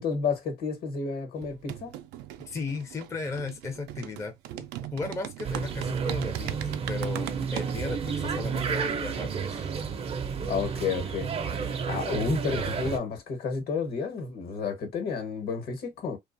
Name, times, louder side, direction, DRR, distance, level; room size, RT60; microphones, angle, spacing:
voice 1, 0.0-1.9 10.5-16.2, left 5 dB, 65° left, 1.1 m, -31 dB
sound 1, 1.4-7.8, right 13 dB, 90° right, 0.4 m, -39 dB
voice 2, 2.5-4.7 4.9-9.7, left 4 dB, 15° left, 0.5 m, -36 dB
sound 2, 5.4-13.0, right 6 dB, 35° right, 0.5 m, -31 dB
2.4 x 2.3 x 2.5 m
cardioid pair, 110°, 17 cm